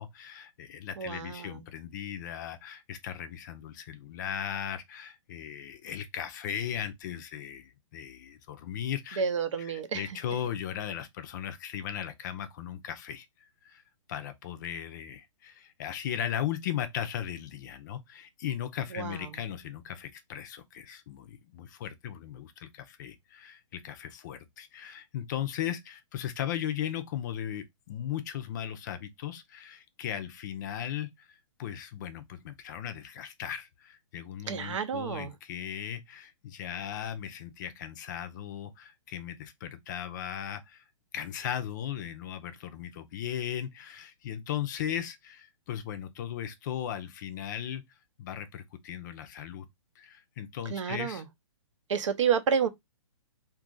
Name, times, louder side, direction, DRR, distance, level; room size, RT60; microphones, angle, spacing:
voice 1, 0.0-9.2 9.6-13.3 13.6-13.8 14.1-40.8 41.1-47.8 48.2-49.7 50.0-51.2, left 10 dB, 35° left, 0.5 m, -37 dB
voice 2, 1.0-1.6 9.2-10.2 18.9-19.4 34.5-35.3 50.7-51.3 51.9-52.7, right 7 dB, 70° right, 0.6 m, -30 dB
2.6 x 2.4 x 3.7 m
hypercardioid pair, 150°, 17 cm